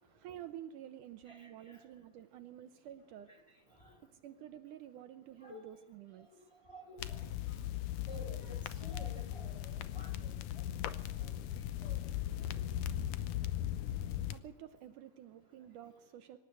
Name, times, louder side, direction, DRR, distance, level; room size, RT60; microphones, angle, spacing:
voice 1, 0.0-6.5 14.3-16.4, right 11 dB, 75° right, 10 dB, 2.3 m, -51 dB
voice 2, 1.3-1.8 3.3-3.4 3.8-4.0 5.4-5.6 6.6-7.3 8.1-10.6 11.2-11.4 11.8-12.0, left 1 dB, 10° left, 3 dB, 3.9 m, -52 dB
sound 1, 7.0-14.4, left 11 dB, 75° left, 2.3 m, -38 dB
25.0 x 13.0 x 8.4 m, 0.99 s
omnidirectional pair, 3.9 m